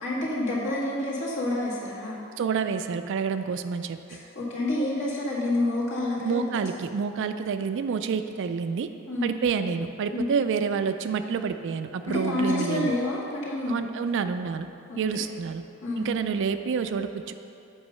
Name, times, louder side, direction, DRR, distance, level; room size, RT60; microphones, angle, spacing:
voice 1, 0.0-2.2 4.1-6.4 9.1-9.4 10.1-10.3 12.1-13.9 14.9-15.0 15.8-16.1, left 1 dB, 60° left, -7 dB, 2.0 m, -28 dB
voice 2, 2.4-4.0 6.2-8.9 9.2-12.9 13.7-14.7 15.0-15.6 16.0-17.3, right 6 dB, 55° right, 9 dB, 0.4 m, -28 dB
7.8 x 5.3 x 5.5 m, 2.7 s
head